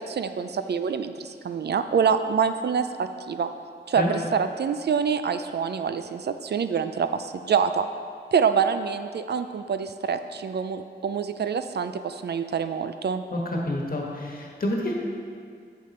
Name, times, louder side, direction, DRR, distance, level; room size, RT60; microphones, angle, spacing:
voice 1, 0.0-3.5 3.9-7.9 8.3-13.2, right 6 dB, 65° right, 9 dB, 0.4 m, -26 dB
voice 2, 13.3-14.9, left 1 dB, 55° left, -1 dB, 1.4 m, -28 dB
7.1 x 6.8 x 4.3 m, 2.2 s
cardioid pair, 65°, 18 cm